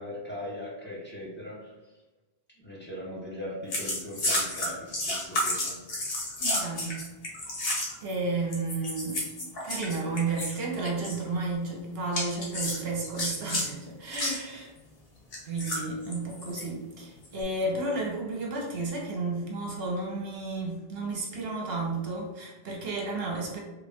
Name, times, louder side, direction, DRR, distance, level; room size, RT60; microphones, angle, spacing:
voice 1, 0.0-1.8 2.6-5.8, left 1 dB, 10° left, -7 dB, 1.0 m, -39 dB
sound 1, 3.7-8.1 8.5-10.6 10.8-11.2 12.1-13.7 14.1-14.4 15.3-16.6 17.2-17.4, left 1 dB, 70° left, 1.2 m, -31 dB
voice 2, 6.4-7.0 7.7-14.7 15.4-23.6, right 3 dB, 70° right, -2 dB, 1.0 m, -32 dB
3.3 x 2.5 x 3.5 m, 1.1 s
omnidirectional pair, 1.0 m